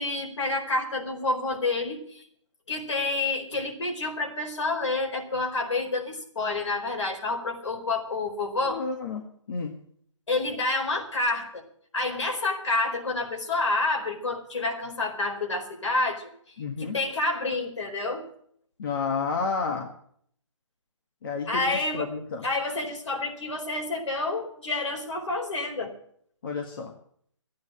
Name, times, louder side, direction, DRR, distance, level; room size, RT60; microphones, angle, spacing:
voice 1, 0.0-2.2 2.7-8.8 10.3-11.6 11.9-16.3 16.8-18.3 21.5-22.1 22.4-25.9, left 2 dB, 70° left, 1 dB, 4.6 m, -28 dB
voice 2, 8.6-9.7 16.6-17.0 18.8-19.9 21.2-22.4 26.4-26.9, left 4 dB, 45° left, 3 dB, 1.8 m, -31 dB
14.0 x 9.5 x 8.9 m, 0.65 s
figure-of-eight pair, 145°, 16 cm